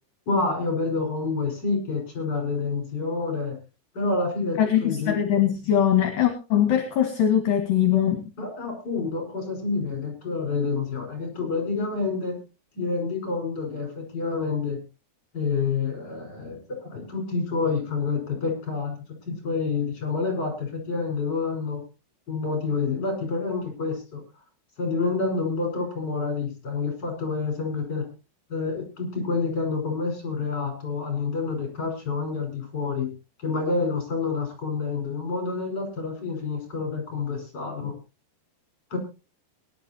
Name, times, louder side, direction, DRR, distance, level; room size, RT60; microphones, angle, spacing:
voice 1, 0.3-3.6 3.9-5.2 8.4-12.4 12.8-14.8 15.3-19.0 19.3-21.8 22.3-24.2 24.8-28.1 28.5-33.1 33.4-38.0 38.9-39.0, left 4 dB, 25° left, 3 dB, 5.3 m, -28 dB
voice 2, 4.6-8.2, left 10 dB, 60° left, 6 dB, 3.2 m, -21 dB
23.0 x 11.5 x 2.9 m, 0.30 s
omnidirectional pair, 5.0 m